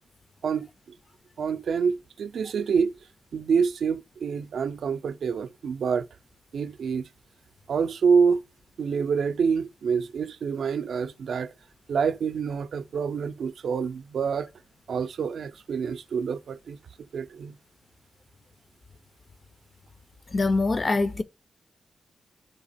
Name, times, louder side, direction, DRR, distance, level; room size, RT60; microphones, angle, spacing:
voice 1, 1.4-2.9 3.3-6.1 6.5-7.1 7.7-8.4 8.8-11.5 11.9-14.5 14.9-16.8 17.1-17.6, right 6 dB, 80° right, 0.4 m, -27 dB
voice 2, 20.3-21.2, left 3 dB, 40° left, 0.5 m, -24 dB
3.6 x 2.9 x 4.1 m
cardioid pair, 90°, 0 cm